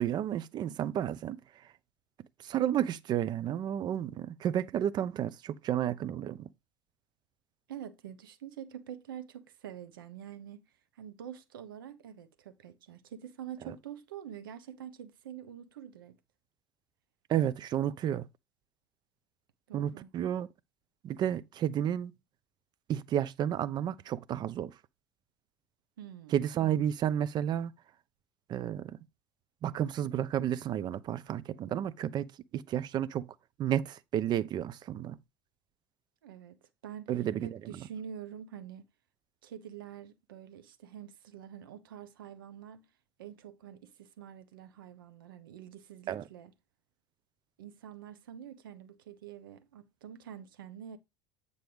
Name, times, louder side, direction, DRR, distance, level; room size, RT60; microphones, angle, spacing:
voice 1, 0.0-1.4 2.4-6.5 13.6-13.7 17.3-18.3 19.7-20.5 21.0-22.1 22.9-24.7 26.3-27.7 28.5-29.0 29.6-32.3 32.5-33.3 33.6-35.2 37.1-37.6 46.1-46.2, right 10 dB, 35° right, 0.6 m, -31 dB
voice 2, 7.7-10.6 11.0-16.2 19.7-20.1 26.0-26.4 36.2-37.1 37.4-38.9 39.4-42.9 43.2-46.5 47.6-51.0, right 9 dB, 70° right, 1.0 m, -46 dB
9.0 x 5.3 x 3.4 m
figure-of-eight pair, 70°, 12 cm